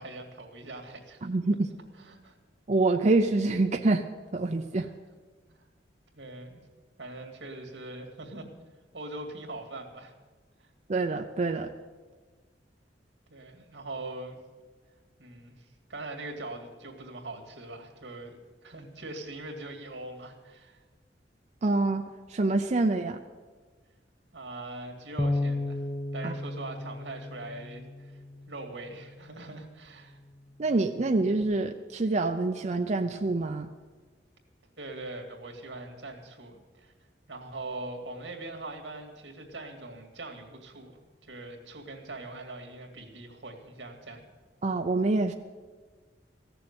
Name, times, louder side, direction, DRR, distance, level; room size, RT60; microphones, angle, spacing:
voice 1, 0.0-1.3 1.9-2.4 4.7-4.9 5.5-5.6 6.1-6.6 7.0-8.5 8.9-10.1 10.6-10.7 13.3-14.4 15.2-18.4 18.6-20.8 24.3-25.9 26.1-30.2 34.8-36.9 37.3-41.0 41.2-44.2, right 2 dB, 90° right, 2 dB, 2.3 m, -42 dB
voice 2, 1.2-1.7 2.7-4.0 4.3-4.9 10.9-11.7 21.6-23.2 26.2-26.3 30.6-33.7 44.6-45.3, right 2 dB, 40° right, 5 dB, 0.5 m, -26 dB
Bass guitar, 25.2-29.6 30.3-31.4, left 2 dB, 15° left, 0.5 m, -35 dB
15.0 x 7.0 x 9.5 m, 1.4 s
head